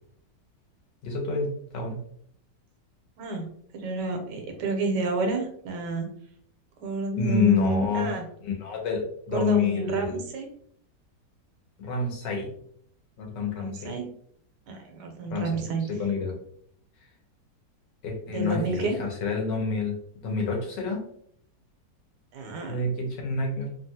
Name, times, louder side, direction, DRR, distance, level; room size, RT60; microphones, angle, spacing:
voice 1, 1.0-2.0 7.2-8.1 8.4-10.2 11.8-12.5 13.2-13.9 15.3-16.3 18.0-20.0 20.2-21.1 22.7-23.7, left 5 dB, 85° left, 1 dB, 1.4 m, -28 dB
voice 2, 3.7-6.1 6.8-8.2 9.3-10.5 13.6-14.1 14.7-15.8 18.3-19.0 22.3-22.9, right 3 dB, 80° right, 3 dB, 1.2 m, -30 dB
3.1 x 2.3 x 2.7 m, 0.65 s
omnidirectional pair, 1.9 m